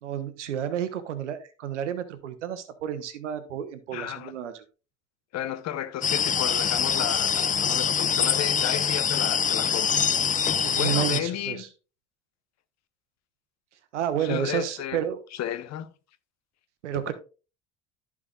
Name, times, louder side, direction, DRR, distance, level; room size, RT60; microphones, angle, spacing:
voice 1, 0.0-4.5 10.6-11.7 13.9-15.2 16.8-17.1, right 10 dB, 90° right, 1.1 m, -30 dB
voice 2, 3.9-4.3 5.3-10.0 10.7-11.7 14.2-15.0 15.3-15.9, left 11 dB, 50° left, 1.0 m, -33 dB
sound 1, 6.0-11.2, left 7 dB, 25° left, 0.6 m, -24 dB
14.5 x 4.9 x 2.5 m
hypercardioid pair, 70°, 35 cm